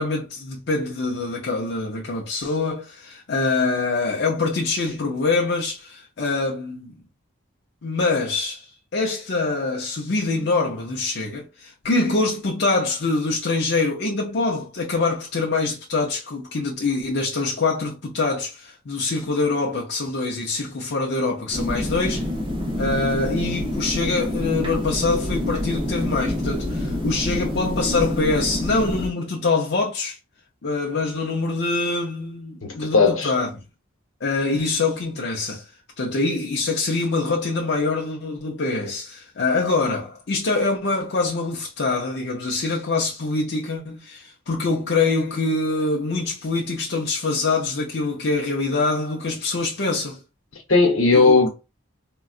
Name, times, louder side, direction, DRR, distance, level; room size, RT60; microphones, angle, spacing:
voice 1, 0.0-6.9 7.8-22.3 22.8-30.2 30.6-33.5 34.2-35.7 36.0-50.2 51.1-51.5, left 3 dB, 55° left, 0.5 m, -24 dB
sound 1, 21.5-29.1, left 1 dB, 25° right, 0.6 m, -27 dB
voice 2, 32.6-33.3 50.7-51.5, left 3 dB, 80° left, 1.0 m, -17 dB
3.7 x 2.2 x 2.4 m
head